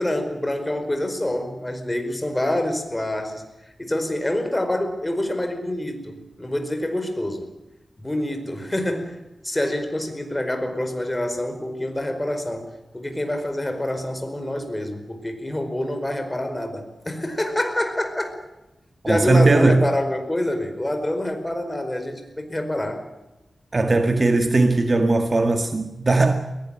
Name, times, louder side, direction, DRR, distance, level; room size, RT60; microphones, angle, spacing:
voice 1, 0.0-3.4 3.8-7.5 8.0-9.2 9.4-18.4 19.0-23.1, left 1 dB, 15° left, 4.9 m, -26 dB
voice 2, 19.1-19.8 23.7-26.3, right 2 dB, 40° right, 1.9 m, -18 dB
22.0 x 18.5 x 9.0 m
wide cardioid pair, 90°, 0 cm